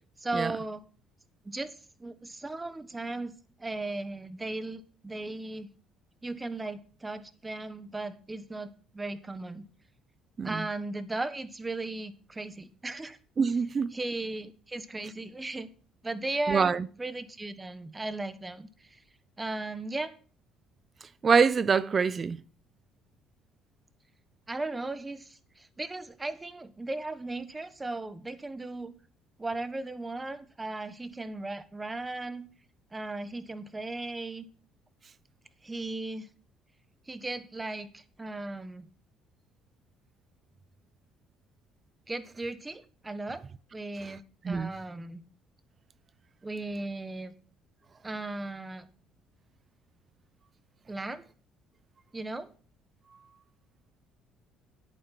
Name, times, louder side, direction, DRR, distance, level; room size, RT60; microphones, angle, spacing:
voice 1, 0.2-0.8 1.4-3.3 3.6-5.7 6.2-9.6 10.4-13.2 13.9-15.7 16.0-19.0 19.4-20.1 24.5-28.9 29.4-32.5 32.9-34.5 35.6-36.3 37.1-38.9 42.1-43.4 43.7-45.2 46.4-47.3 48.0-48.9 50.9-51.2 52.1-52.5, right 2 dB, 15° right, 1.3 m, -36 dB
voice 2, 13.4-14.0 16.5-16.9 21.2-22.4 44.4-44.7, right 5 dB, 35° right, 0.6 m, -25 dB
10.5 x 8.9 x 5.9 m
cardioid pair, 105°, 0 cm